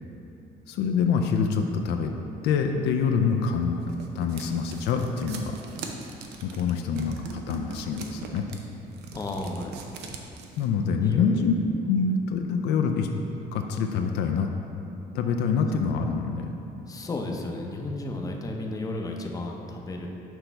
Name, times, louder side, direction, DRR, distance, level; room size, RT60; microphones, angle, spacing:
voice 1, 0.7-3.8 4.1-5.6 6.4-8.4 10.6-11.5 11.9-13.1 13.5-14.5 15.1-16.5, left 6 dB, 80° left, 4 dB, 0.5 m, -25 dB
sound 1, 3.4-10.7, right 5 dB, 80° right, 0.6 m, -41 dB
voice 2, 9.1-9.9 11.0-11.5 16.9-20.1, left 2 dB, 20° left, 1 dB, 0.6 m, -33 dB
6.1 x 3.3 x 5.7 m, 2.8 s
cardioid pair, 110°, 17 cm